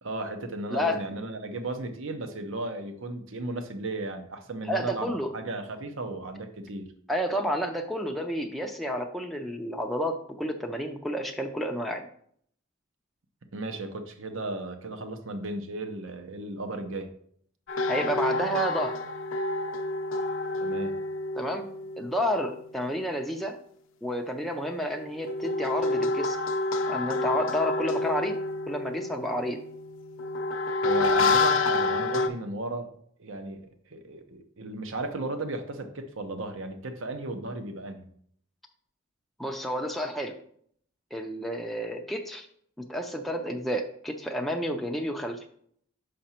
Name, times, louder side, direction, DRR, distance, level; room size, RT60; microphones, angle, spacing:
voice 1, 0.0-6.9 13.5-17.1 20.6-20.9 30.8-38.1, right 2 dB, 65° right, 7 dB, 0.7 m, -35 dB
voice 2, 0.7-1.0 4.6-5.3 7.1-12.1 17.9-19.0 21.3-21.7 22.0-23.6 24.0-26.4 26.9-28.4 28.7-29.6 39.4-40.3 41.1-42.5 42.8-45.4, equal, ahead, 2 dB, 0.4 m, -30 dB
sound 1, 17.7-22.7 24.9-32.3, left 3 dB, 65° left, 0.6 m, -28 dB
5.8 x 5.1 x 4.3 m, 0.65 s
head